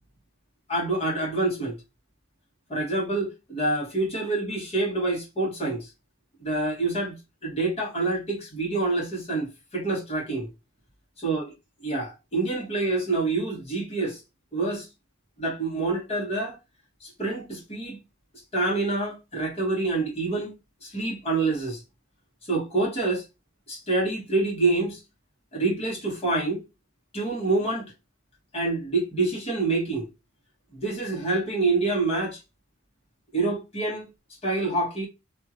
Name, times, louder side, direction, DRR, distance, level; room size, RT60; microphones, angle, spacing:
voice 1, 0.7-1.8 2.7-5.9 6.4-7.2 7.4-10.5 11.2-11.5 11.8-14.2 14.5-14.9 15.4-16.6 17.0-18.0 18.5-20.5 20.8-21.8 22.5-23.2 23.7-25.0 25.5-26.6 27.1-27.9 28.5-30.1 30.7-32.4 33.3-34.1 34.4-35.1, right 2 dB, 30° left, 1.3 m, -27 dB
2.8 x 2.4 x 2.9 m
head